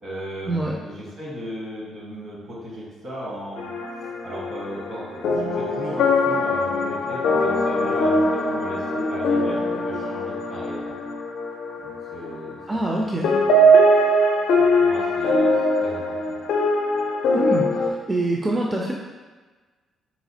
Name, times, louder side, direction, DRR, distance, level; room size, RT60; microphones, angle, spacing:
voice 1, 0.0-3.7 4.0-10.9 11.8-12.8 13.2-13.6 14.5-15.5 15.8-16.4, equal, 60° right, -5 dB, 1.4 m, -36 dB
sound 1, 3.6-13.0 13.2-17.9, equal, 75° left, 0.4 m, -21 dB
voice 2, 12.7-13.3 17.3-17.7 18.1-18.9, right 2 dB, 20° right, -2 dB, 0.4 m, -24 dB
4.0 x 2.4 x 2.7 m, 1.3 s
cardioid pair, 90°, 0 cm